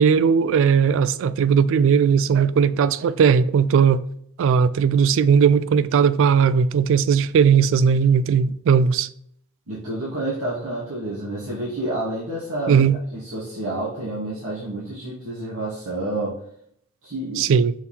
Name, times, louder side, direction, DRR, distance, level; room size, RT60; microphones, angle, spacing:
voice 1, 0.0-4.0 4.4-9.1 12.7-13.0 17.4-17.7, right 6 dB, 60° right, 0.3 m, -18 dB
voice 2, 9.7-12.8 13.1-16.4 17.0-17.5, right 1 dB, 85° right, 1.9 m, -29 dB
6.0 x 3.7 x 4.3 m
head